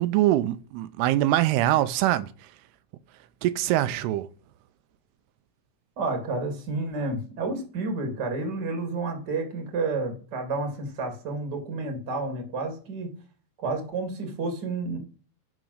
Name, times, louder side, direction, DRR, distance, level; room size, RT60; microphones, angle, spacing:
voice 1, 0.0-2.3 3.4-4.3, right 14 dB, 85° right, 2.6 m, -23 dB
voice 2, 6.0-13.1 13.6-15.0, right 3 dB, 35° right, 2.2 m, -30 dB
10.5 x 5.1 x 6.4 m
omnidirectional pair, 4.6 m